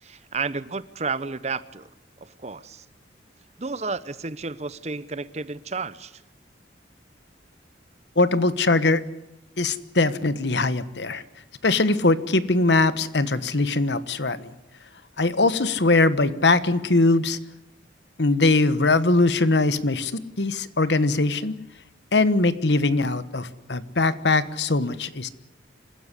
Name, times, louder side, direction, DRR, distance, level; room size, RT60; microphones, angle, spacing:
voice 1, 0.0-1.9 2.2-2.8 3.6-6.2, right 4 dB, 35° right, 16 dB, 0.8 m, -32 dB
voice 2, 8.2-9.0 9.6-11.2 11.6-14.5 15.2-17.4 18.2-21.6 22.1-25.3, left 2 dB, 70° left, 14 dB, 1.3 m, -21 dB
26.5 x 15.5 x 9.9 m, 0.89 s
head